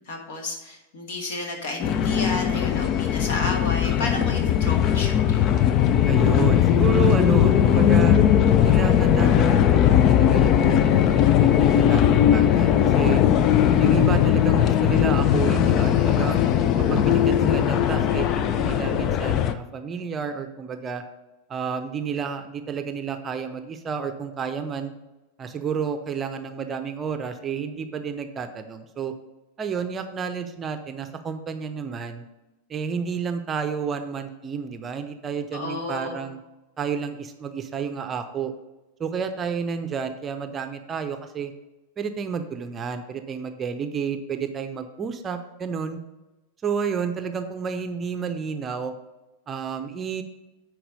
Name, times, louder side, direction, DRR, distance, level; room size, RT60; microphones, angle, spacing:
voice 1, 0.1-5.6 35.5-36.2, left 2 dB, 55° left, 2 dB, 1.9 m, -32 dB
sound 1, 1.8-19.5, left 10 dB, 35° left, 0.5 m, -19 dB
voice 2, 6.1-8.2 8.6-13.2 13.8-16.5 16.9-21.0 21.5-24.9 25.4-29.1 29.6-32.2 32.7-36.4 36.8-38.5 39.0-41.5 42.0-46.0 46.6-48.9 49.5-50.2, right 6 dB, 25° right, 7 dB, 0.7 m, -30 dB
10.0 x 4.7 x 5.1 m, 1.0 s
figure-of-eight pair, 90°, 0 cm